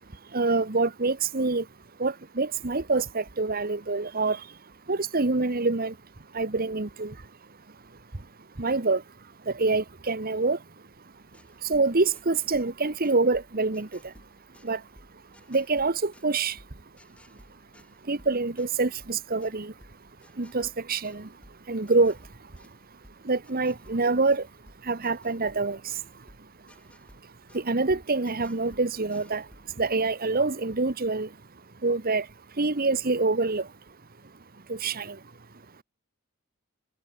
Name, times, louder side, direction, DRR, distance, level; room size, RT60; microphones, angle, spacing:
voice 1, 0.1-1.7 2.0-6.0 6.3-7.3 7.7-10.7 11.6-14.2 14.6-14.9 15.5-16.6 17.3-17.6 18.0-20.0 20.3-26.7 27.2-31.4 31.7-34.0 34.7-35.5, right 3 dB, 40° right, 1.2 m, -27 dB
sound 1, 11.1-29.8, equal, 5° left, 5.4 m, -57 dB
head